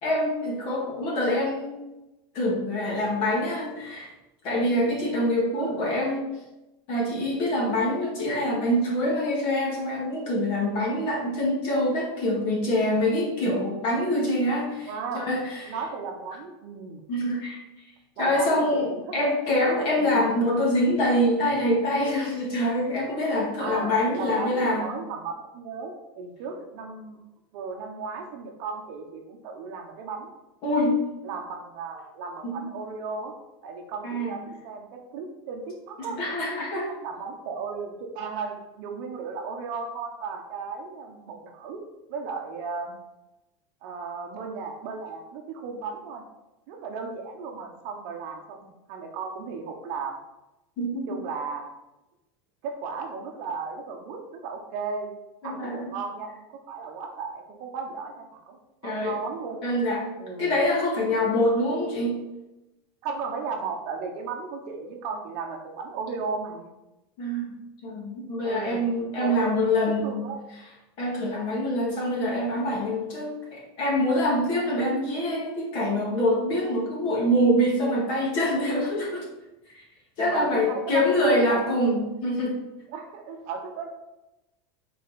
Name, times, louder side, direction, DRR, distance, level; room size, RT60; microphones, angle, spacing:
voice 1, 0.0-1.9 2.3-4.1 4.4-6.3 6.9-14.9 15.1-15.7 17.1-17.6 18.2-24.8 30.6-31.0 32.4-32.7 34.0-34.4 36.0-36.9 50.8-51.2 55.4-56.0 58.8-59.1 59.6-62.2 67.2-67.5 67.8-70.3 71.0-79.2 79.7-79.8 80.2-82.6, left 1 dB, 35° left, -2 dB, 1.9 m, -25 dB
voice 2, 5.5-5.9 14.9-17.0 18.2-19.2 20.0-20.3 23.6-27.2 27.5-30.3 31.2-33.3 33.6-36.2 37.0-41.8 42.1-42.9 43.8-46.2 46.7-50.2 51.1-51.7 52.6-55.1 55.4-58.6 58.8-59.8 60.2-60.6 63.0-66.7 68.4-68.9 69.2-70.4 78.9-79.0 80.2-81.6 82.9-83.9, right 5 dB, 45° right, 3 dB, 0.9 m, -35 dB
6.5 x 4.2 x 4.1 m, 0.98 s
supercardioid pair, 175°, 14 cm